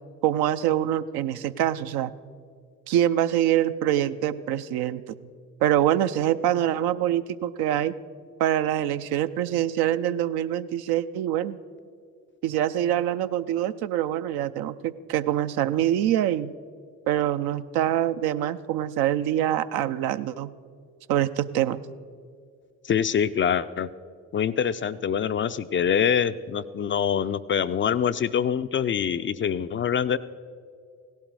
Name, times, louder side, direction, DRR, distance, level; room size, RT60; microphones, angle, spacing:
voice 1, 0.2-2.1 2.9-5.0 5.6-7.9 8.4-11.6 12.4-16.5 17.1-20.5 21.1-21.8, right 11 dB, 65° right, 12 dB, 0.6 m, -25 dB
voice 2, 22.8-23.9 24.3-30.2, left 8 dB, 30° left, 12 dB, 0.4 m, -25 dB
16.5 x 12.0 x 4.7 m, 2.1 s
hypercardioid pair, 50°, 41 cm